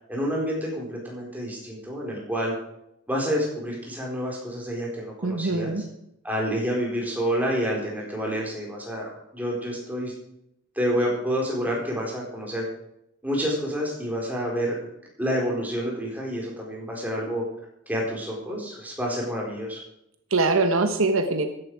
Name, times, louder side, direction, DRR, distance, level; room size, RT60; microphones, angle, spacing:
voice 1, 0.0-2.5 3.1-5.8 6.2-10.1 10.8-12.7 13.2-14.8 15.2-17.5 17.9-19.8, equal, 10° right, -3 dB, 4.3 m, -28 dB
voice 2, 5.2-5.8 20.3-21.5, right 3 dB, 70° right, 7 dB, 1.2 m, -23 dB
15.0 x 11.0 x 4.9 m, 0.79 s
head